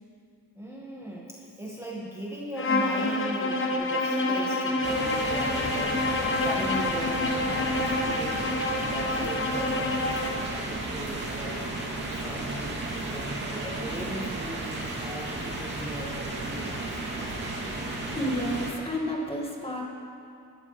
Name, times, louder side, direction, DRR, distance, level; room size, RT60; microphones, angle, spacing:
voice 1, 0.5-6.1 6.4-11.6 12.2-17.1, right 1 dB, 5° right, -4 dB, 1.6 m, -38 dB
Bowed string instrument, 2.6-10.5, left 2 dB, 30° left, 1.2 m, -27 dB
sound 1, 4.8-18.7, right 2 dB, 25° right, 2.6 m, -33 dB
voice 2, 18.1-19.8, equal, 15° left, -1 dB, 1.9 m, -30 dB
21.5 x 12.5 x 3.3 m, 2.4 s
cardioid pair, 125°, 40 cm